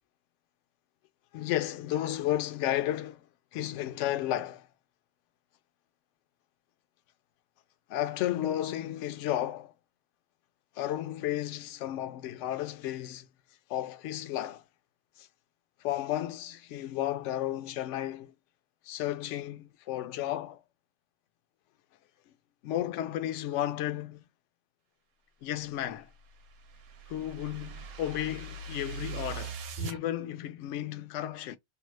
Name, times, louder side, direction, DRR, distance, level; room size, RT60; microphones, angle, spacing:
voice 1, 1.3-3.3 3.5-4.7 7.9-9.7 10.8-13.3 13.7-14.6 15.2-15.3 15.8-18.3 18.8-20.6 22.6-24.2 25.4-26.1 27.1-31.6, left 12 dB, 65° left, 0.8 m, -33 dB
sound 1, 25.9-30.0, right 5 dB, 80° right, 1.0 m, -41 dB
2.7 x 2.3 x 2.9 m
omnidirectional pair, 1.5 m